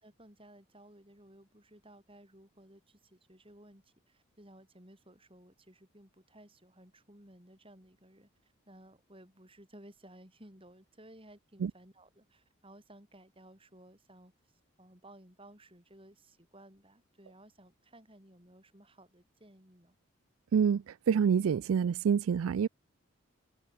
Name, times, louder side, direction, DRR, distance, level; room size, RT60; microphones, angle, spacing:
voice 1, 0.0-20.0, right 1 dB, 25° right, 6.9 m, -57 dB
voice 2, 20.5-22.7, right 7 dB, 75° right, 0.3 m, -27 dB
open air
head